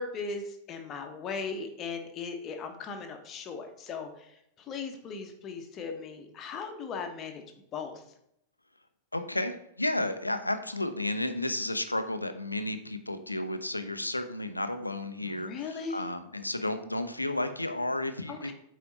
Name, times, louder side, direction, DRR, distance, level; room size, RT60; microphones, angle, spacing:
voice 1, 0.0-7.4 7.7-8.0 15.2-16.0 18.3-18.5, left 4 dB, 30° left, 5 dB, 1.1 m, -38 dB
voice 2, 9.1-18.5, left 1 dB, 85° left, 9 dB, 0.6 m, -32 dB
8.4 x 4.2 x 4.2 m, 0.76 s
figure-of-eight pair, 90°, 0 cm